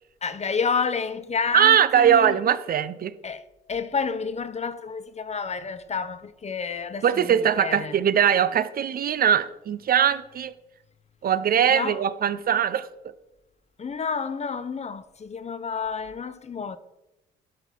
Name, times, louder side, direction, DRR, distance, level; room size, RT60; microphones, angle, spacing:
voice 1, 0.2-2.4 3.2-7.9 11.7-12.0 13.8-16.8, left 5 dB, 30° left, 0.9 m, -30 dB
voice 2, 1.5-3.1 7.0-10.5 11.2-12.9, right 9 dB, 45° right, 0.6 m, -21 dB
12.0 x 5.6 x 4.6 m
supercardioid pair, 65°, 21 cm